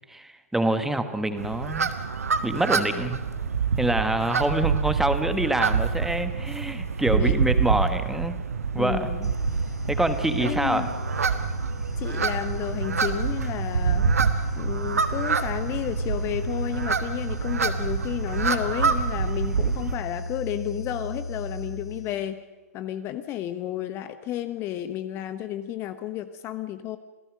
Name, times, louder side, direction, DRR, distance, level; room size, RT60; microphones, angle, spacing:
voice 1, 0.1-1.9 2.4-3.2 3.8-8.4 8.7-9.1 9.9-10.8, right 1 dB, 5° right, 9 dB, 1.5 m, -26 dB
sound 1, 1.4-20.0, right 5 dB, 70° right, 1.5 m, -27 dB
voice 2, 7.1-7.4 8.8-9.3 10.4-10.9 12.0-14.1 14.6-22.4 22.7-27.0, left 12 dB, 30° left, 11 dB, 1.0 m, -32 dB
sound 2, 9.2-22.4, left 2 dB, 85° left, 3.2 m, -35 dB
27.0 x 17.5 x 6.4 m, 1.2 s
figure-of-eight pair, 105°, 8 cm